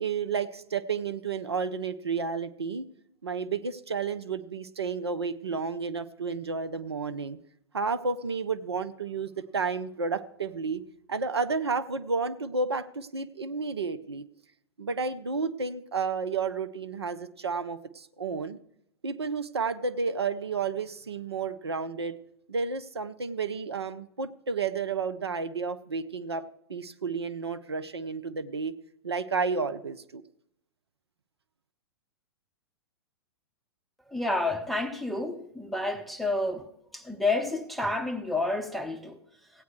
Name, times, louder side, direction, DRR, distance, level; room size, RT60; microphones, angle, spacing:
voice 1, 0.0-2.9 3.2-7.4 7.7-10.8 11.1-14.3 14.8-18.6 19.0-22.2 22.5-28.8 29.0-30.2, right 4 dB, 75° right, 0.6 m, -31 dB
voice 2, 34.1-39.2, left 2 dB, ahead, 0.7 m, -30 dB
16.0 x 9.3 x 3.1 m
figure-of-eight pair, 100°, 14 cm